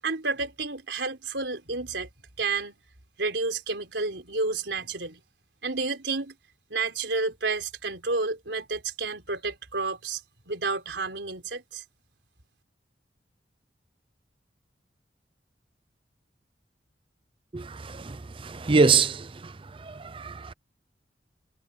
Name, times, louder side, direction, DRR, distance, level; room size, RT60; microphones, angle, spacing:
voice 1, 0.0-2.1 2.4-2.8 3.2-5.2 5.6-6.3 6.7-10.2 10.5-11.8, right 3 dB, 90° right, 3.9 m, -30 dB
voice 2, 17.5-19.5 19.8-20.5, right 4 dB, 30° right, 0.5 m, -25 dB
head